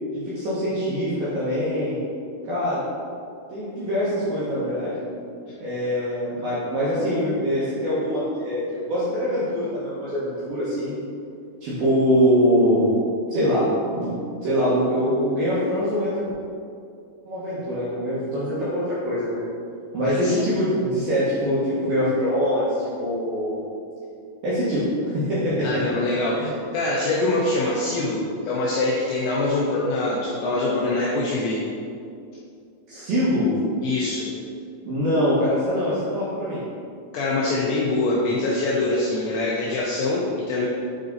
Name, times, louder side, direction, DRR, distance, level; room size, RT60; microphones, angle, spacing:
voice 1, 0.1-2.0 2.4-2.8 3.5-4.9 5.6-11.0 11.6-12.8 13.3-14.2 14.4-16.1 17.3-19.4 19.9-22.7 23.0-23.6 24.4-25.8 26.3-26.5 32.9-33.5 34.8-36.6, equal, 75° right, -10 dB, 2.2 m, -23 dB
voice 2, 25.6-31.6 33.8-34.3 37.1-40.7, left 2 dB, 85° left, -4 dB, 2.5 m, -24 dB
8.1 x 3.7 x 3.9 m, 2.4 s
omnidirectional pair, 5.8 m